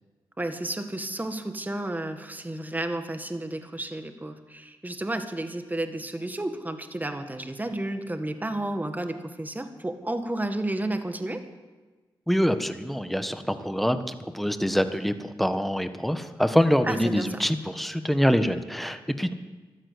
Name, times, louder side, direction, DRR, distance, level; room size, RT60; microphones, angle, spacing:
voice 1, 0.4-11.5 16.9-17.3, right 1 dB, 20° right, 7 dB, 1.8 m, -32 dB
voice 2, 12.3-19.3, equal, ahead, 9 dB, 1.4 m, -25 dB
14.5 x 12.5 x 8.2 m, 1.3 s
cardioid pair, 55°, 9 cm